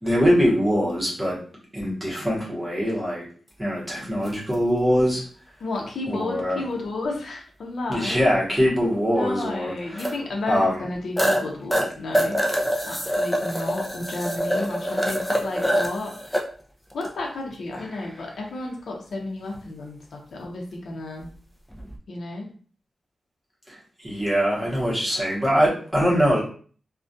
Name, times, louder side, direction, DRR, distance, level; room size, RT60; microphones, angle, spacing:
voice 1, 0.0-1.4 1.7-3.2 3.6-5.2 6.1-6.6 7.9-10.1 10.5-10.9 23.7-26.4, equal, 15° right, -5 dB, 0.8 m, -23 dB
sound 1, 4.3-4.4 6.9-7.0 10.0-10.1 10.6-10.7 11.2-11.4 11.7-16.4 16.9-17.1 17.7-18.2 21.7-21.9, equal, ahead, 0.4 m, -25 dB
voice 2, 5.6-8.3 9.1-12.4 12.9-16.1 16.9-21.3 22.1-22.5, left 2 dB, 65° left, 0 dB, 0.6 m, -32 dB
2.3 x 2.2 x 2.6 m, 0.43 s
wide cardioid pair, 175°, 0 cm